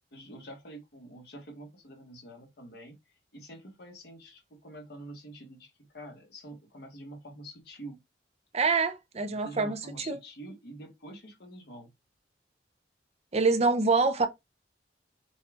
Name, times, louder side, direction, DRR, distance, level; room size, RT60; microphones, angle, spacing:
voice 1, 0.1-8.0 9.2-11.9, right 1 dB, 65° left, 1.2 m, -47 dB
voice 2, 8.5-9.8 10.1-10.2 13.3-14.3, right 4 dB, 40° right, 0.7 m, -25 dB
5.4 x 2.4 x 3.4 m
head